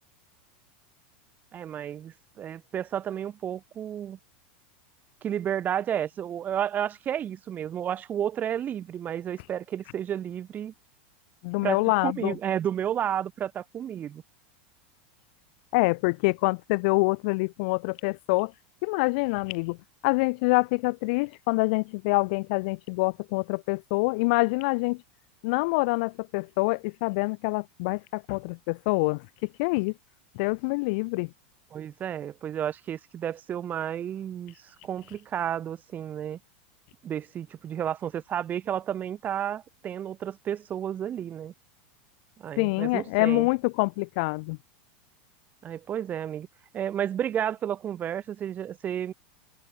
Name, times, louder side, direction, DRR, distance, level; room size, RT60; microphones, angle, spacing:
voice 1, 1.5-4.2 5.2-10.7 11.6-14.2 31.7-36.4 37.0-41.5 42.4-43.5 45.6-46.5 46.7-49.1, right 9 dB, 30° right, 4.6 m, -32 dB
voice 2, 11.4-12.3 15.7-18.5 18.8-19.8 20.0-25.0 25.4-29.2 29.6-29.9 30.3-31.3 42.6-44.6, left 27 dB, 60° left, 1.4 m, -26 dB
supercardioid pair, 130°, 6 cm